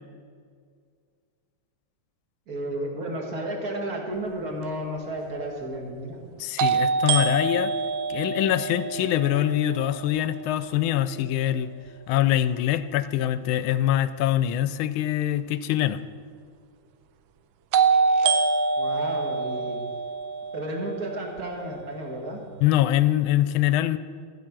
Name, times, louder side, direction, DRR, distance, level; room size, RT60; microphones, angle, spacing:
voice 1, 2.5-6.2 18.8-19.8 20.5-22.4, right 1 dB, 45° right, 0 dB, 2.2 m, -32 dB
sound 1, 4.6-4.7 6.6-10.5 17.7-21.7, right 5 dB, 75° right, 1.3 m, -25 dB
voice 2, 6.4-7.7 8.1-11.7 12.1-16.0 22.6-24.0, left 12 dB, 75° left, 13 dB, 1.4 m, -24 dB
15.0 x 7.9 x 6.0 m, 2.1 s
omnidirectional pair, 2.4 m